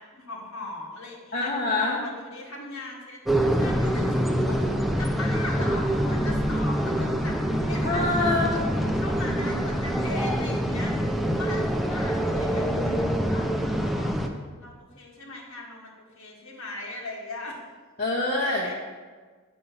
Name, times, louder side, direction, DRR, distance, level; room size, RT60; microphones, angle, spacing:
voice 1, 0.0-7.4 7.6-17.6 18.4-18.7, left 2 dB, 75° left, -2 dB, 1.7 m, -39 dB
voice 2, 1.3-2.0 7.8-8.6 18.0-18.7, left 2 dB, 40° left, -3 dB, 0.9 m, -25 dB
sound 1, 3.3-14.3, equal, ahead, 0.4 m, -25 dB
6.9 x 6.6 x 5.6 m, 1.4 s
head